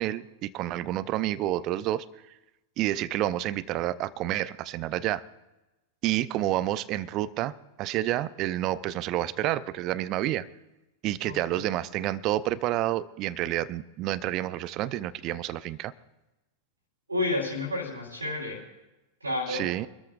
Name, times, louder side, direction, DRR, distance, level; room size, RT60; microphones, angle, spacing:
voice 1, 0.0-2.0 2.8-5.2 6.0-10.5 11.0-15.9 19.5-19.9, right 14 dB, 40° right, 18 dB, 0.6 m, -29 dB
voice 2, 17.1-18.6 19.2-19.7, left 2 dB, 80° right, -2 dB, 3.5 m, -30 dB
27.0 x 13.5 x 2.5 m, 1.0 s
figure-of-eight pair, 90°, 0 cm